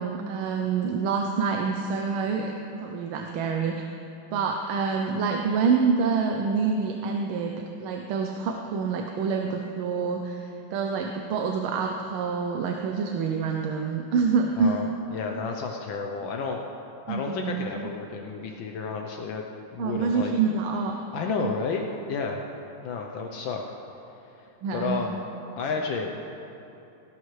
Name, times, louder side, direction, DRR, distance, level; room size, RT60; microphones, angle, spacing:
voice 1, 0.0-2.5 2.8-3.8 4.3-7.5 7.8-14.7 17.1-17.9 19.8-20.9 21.4-21.5 24.6-25.1, right 5 dB, 80° right, 3 dB, 1.5 m, -27 dB
voice 2, 14.6-16.6 17.1-19.4 19.7-20.3 21.1-22.4 22.8-23.6 24.7-25.2 25.6-26.2, left 5 dB, 75° left, 2 dB, 1.4 m, -31 dB
17.5 x 11.5 x 3.2 m, 3.0 s
omnidirectional pair, 2.3 m